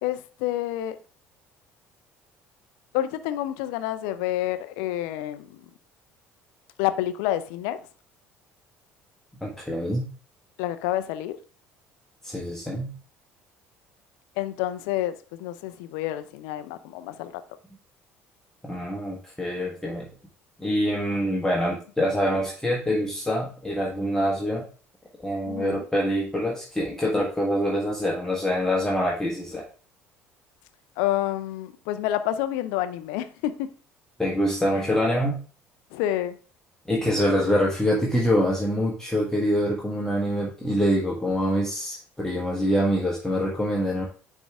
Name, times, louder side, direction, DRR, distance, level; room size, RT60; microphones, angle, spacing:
voice 1, 0.0-1.0 2.9-5.6 6.8-7.8 10.6-11.4 14.4-15.1 15.4-17.3 25.5-25.8 31.0-33.7 35.9-36.3, left 13 dB, 65° left, 0.5 m, -28 dB
voice 2, 9.4-10.1 12.2-12.9 18.6-20.1 20.6-24.6 25.2-29.6 34.2-35.4 36.9-44.0, equal, 10° left, 1.5 m, -25 dB
9.9 x 3.6 x 3.4 m
figure-of-eight pair, 55°, 7 cm